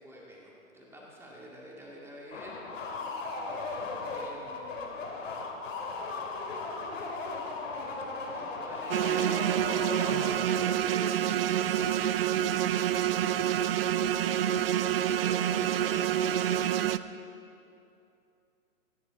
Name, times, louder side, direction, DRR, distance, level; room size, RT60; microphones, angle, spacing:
voice 1, 0.0-2.6 4.1-5.1 8.3-11.2 15.1-16.6, equal, 5° right, -4 dB, 2.1 m, -46 dB
sound 1, 2.3-10.6, left 3 dB, 65° left, 2.3 m, -37 dB
sound 2, 8.9-17.0, right 11 dB, 45° right, 0.4 m, -27 dB
18.0 x 9.8 x 4.2 m, 2.7 s
hypercardioid pair, 125°, 41 cm